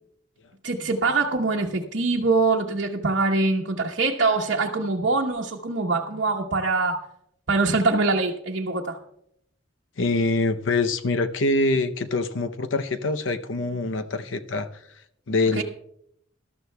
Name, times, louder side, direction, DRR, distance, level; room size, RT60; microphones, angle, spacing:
voice 1, 0.6-7.0 7.5-9.0 15.5-15.6, right 3 dB, 70° right, -3 dB, 1.0 m, -23 dB
voice 2, 10.0-14.7 15.3-15.6, left 2 dB, 80° left, 9 dB, 0.7 m, -24 dB
19.5 x 12.5 x 2.3 m, 0.74 s
head